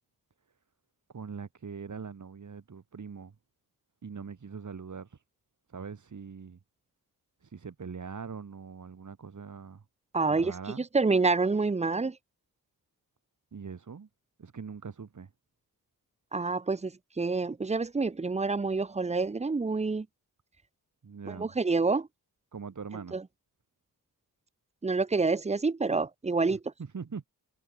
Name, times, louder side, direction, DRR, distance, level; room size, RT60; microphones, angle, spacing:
voice 1, 1.1-3.3 4.0-5.1 5.7-6.6 7.4-9.8 10.3-10.8 13.5-14.1 14.4-15.3 21.0-21.5 22.5-23.2 26.5-27.2, right 5 dB, 50° right, 5.1 m, -42 dB
voice 2, 10.1-12.2 16.3-20.1 21.3-22.1 23.1-23.2 24.8-26.6, right 3 dB, 20° right, 0.7 m, -28 dB
wide cardioid pair, 105°, 37 cm